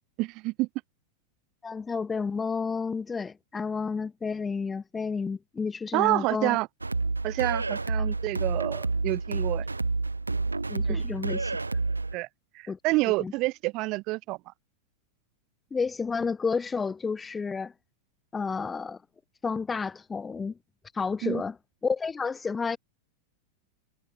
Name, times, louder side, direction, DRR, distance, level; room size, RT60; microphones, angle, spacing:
voice 1, 0.2-0.7 5.9-6.7 7.2-9.6 10.9-11.0 12.1-12.3 12.5-14.4 21.2-21.4, right 22 dB, 40° right, 1.2 m, -28 dB
voice 2, 1.6-6.6 10.7-11.5 12.7-12.8 13.2-13.3 15.7-17.7 18.3-19.0 19.4-20.5 20.9-21.6 21.8-22.8, left 5 dB, 15° left, 0.7 m, -31 dB
sound 1, 6.8-12.2, right 3 dB, 80° right, 0.7 m, -29 dB
figure-of-eight pair, 90°, 0 cm